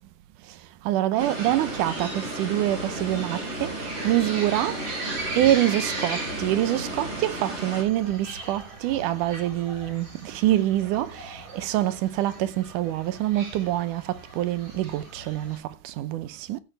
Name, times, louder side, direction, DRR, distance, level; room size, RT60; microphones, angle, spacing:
voice 1, 0.9-4.8 5.4-16.6, right 14 dB, 80° right, 2.3 m, -26 dB
sound 1, 1.2-7.8, right 1 dB, 30° right, 3.3 m, -34 dB
sound 2, 1.4-15.6, right 1 dB, 45° right, 5.3 m, -39 dB
13.5 x 8.9 x 3.4 m
omnidirectional pair, 3.7 m